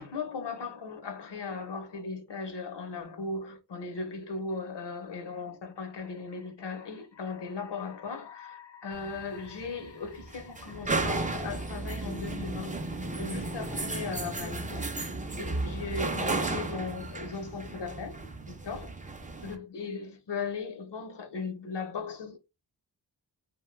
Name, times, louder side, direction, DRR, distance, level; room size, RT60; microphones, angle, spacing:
voice 1, 0.0-14.9 15.3-18.2 18.5-19.0 19.4-22.4, left 4 dB, 75° left, 0.8 m, -37 dB
sound 1, 8.9-19.6, right 2 dB, 20° right, 0.5 m, -34 dB
2.6 x 2.3 x 3.1 m
wide cardioid pair, 60°, 42 cm